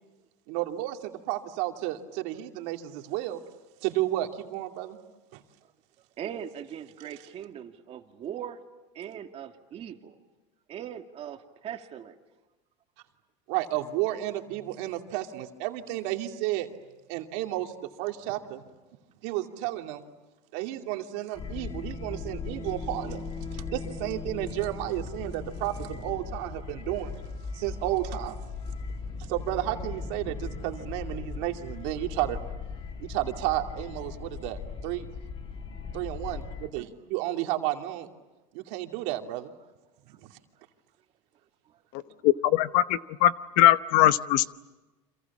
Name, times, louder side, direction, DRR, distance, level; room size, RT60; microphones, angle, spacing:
voice 1, 0.5-3.4 3.8-5.0 5.3-5.4 13.5-16.7 17.1-17.7 18.0-18.6 19.2-20.0 20.5-23.2 23.5-27.1 27.5-28.4 29.3-32.4 33.0-35.1 35.9-38.1 38.5-39.5 40.1-40.3, right 15 dB, 70° right, 4 dB, 2.6 m, -32 dB
voice 2, 6.2-8.6 8.9-10.2 10.7-12.1, right 9 dB, 40° right, 5 dB, 2.4 m, -40 dB
sound 1, 21.3-36.7, left 4 dB, 35° left, 2.9 m, -38 dB
voice 3, 42.2-42.8 43.2-44.5, left 13 dB, 60° left, 14 dB, 1.0 m, -20 dB
29.5 x 26.5 x 7.3 m, 1.1 s
supercardioid pair, 120°, 16 cm